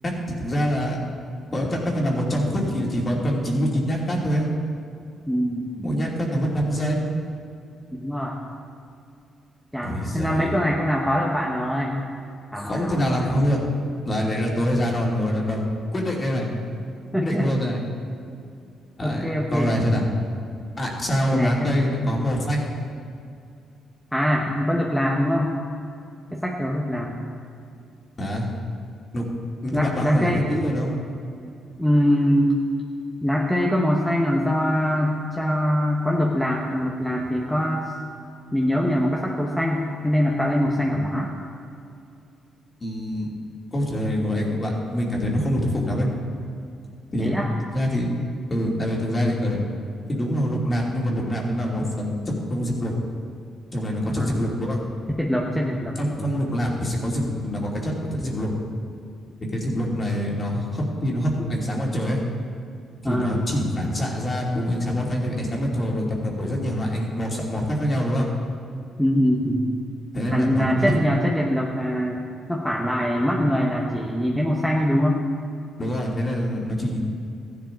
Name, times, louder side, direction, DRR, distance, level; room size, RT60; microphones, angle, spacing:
voice 1, 0.0-1.0 1.5-4.5 5.8-7.0 9.8-10.6 12.6-13.6 14.0-15.6 15.9-16.5 17.2-17.8 19.0-20.1 20.8-22.6 28.2-28.5 29.1-29.2 29.6-30.9 42.8-43.3 43.7-46.1 47.1-47.3 47.7-48.1 48.5-49.6 50.1-52.9 53.7-54.8 56.0-58.5 59.5-62.2 63.0-68.3 70.1-71.0 75.8-77.0, equal, 30° left, -2 dB, 2.7 m, -25 dB
voice 2, 5.3-5.7 7.9-8.4 9.7-12.0 12.5-13.3 17.1-17.5 19.0-19.7 21.3-21.7 24.1-25.5 26.3-27.2 29.7-30.4 31.8-32.6 33.2-37.9 38.5-41.3 47.2-47.5 54.2-54.3 55.1-55.9 63.0-63.4 69.0-69.6 70.3-72.2 72.5-75.2, equal, ahead, -2 dB, 1.2 m, -23 dB
14.5 x 10.5 x 3.9 m, 2.5 s
cardioid pair, 90°, 0 cm